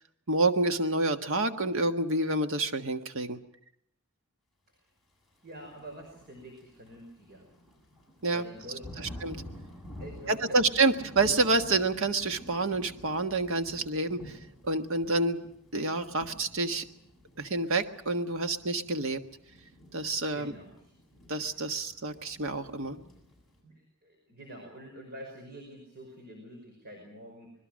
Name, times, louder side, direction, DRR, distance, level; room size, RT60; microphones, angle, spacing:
voice 1, 0.3-3.4 8.2-8.5 9.0-9.4 10.3-14.4 14.6-16.8 17.4-19.2 19.9-20.5 21.3-23.0, right 2 dB, 65° right, 8 dB, 1.6 m, -28 dB
voice 2, 5.4-7.5 8.2-9.2 10.0-10.7 20.3-20.9 23.6-27.5, right 1 dB, 50° right, 2 dB, 5.4 m, -46 dB
Thunder / Rain, 5.5-23.6, equal, ahead, 7.8 m, -50 dB
26.0 x 21.0 x 6.4 m, 0.70 s
head